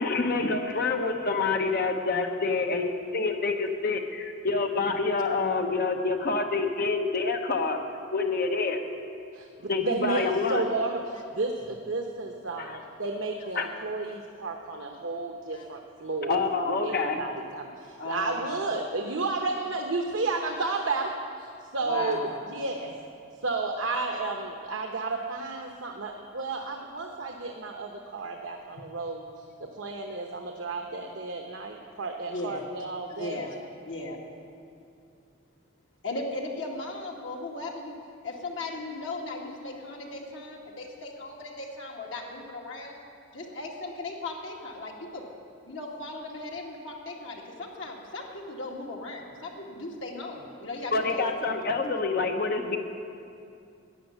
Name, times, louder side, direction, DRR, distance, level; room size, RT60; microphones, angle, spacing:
voice 1, 0.0-7.8 8.1-8.8 9.7-10.6 12.6-12.8 13.5-13.7 16.2-17.2 50.9-52.8, left 3 dB, 50° left, 4 dB, 1.0 m, -27 dB
voice 2, 9.9-11.0 11.4-17.7 18.1-21.1 21.7-22.2 22.5-22.9 23.4-29.2 29.8-33.4, right 3 dB, 80° right, 3 dB, 0.9 m, -32 dB
voice 3, 18.0-18.6 21.8-22.4 32.3-32.6 33.1-33.6 33.9-34.2 36.0-37.9 38.2-43.0 43.3-45.3 45.7-51.2, left 2 dB, 75° left, -1 dB, 2.1 m, -37 dB
13.0 x 9.8 x 8.1 m, 2.5 s
head